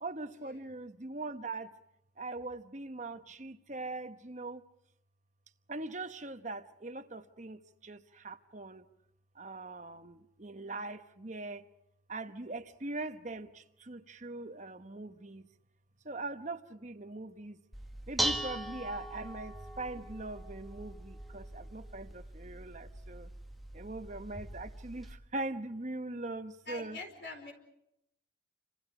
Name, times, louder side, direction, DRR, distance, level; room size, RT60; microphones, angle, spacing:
voice 1, 0.0-1.7 2.2-4.6 5.7-8.8 9.3-11.6 12.1-15.5 16.0-17.6 18.1-23.3 23.7-27.0, right 2 dB, 40° right, 1.1 m, -41 dB
Dishes pots and pans, 17.7-25.1, right 1 dB, ahead, 1.4 m, -40 dB
voice 2, 26.7-27.5, left 3 dB, 60° left, 4.7 m, -44 dB
28.5 x 26.0 x 5.0 m
head